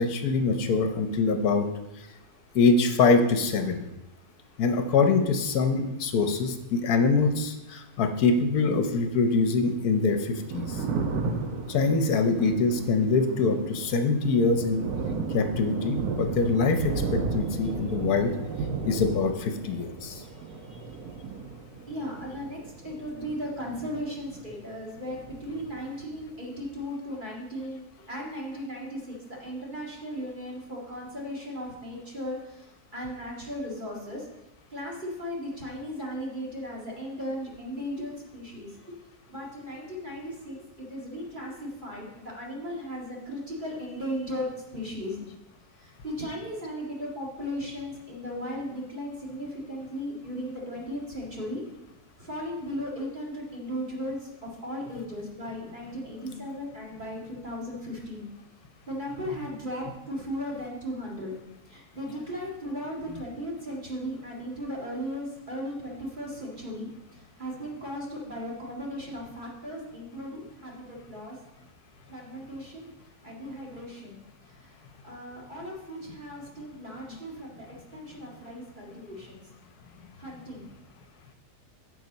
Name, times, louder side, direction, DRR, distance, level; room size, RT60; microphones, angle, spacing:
voice 1, 0.0-1.7 2.5-3.8 4.6-10.8 11.7-14.9 15.3-18.4 18.8-20.2 56.2-56.4, left 4 dB, 75° left, 6 dB, 1.3 m, -24 dB
voice 2, 2.1-2.6 4.2-4.6 7.8-8.0 20.3-20.9 21.9-34.3 34.7-39.0 39.3-45.2 45.8-51.6 52.2-58.3 58.9-61.3 61.7-71.4 72.1-74.2 74.5-77.7 77.9-79.4 80.2-80.7, equal, 30° right, -3 dB, 2.0 m, -37 dB
Thunder, 10.3-24.7 25.0-26.2, right 4 dB, 80° right, 1.4 m, -34 dB
9.9 x 6.5 x 4.1 m, 0.94 s
omnidirectional pair, 1.6 m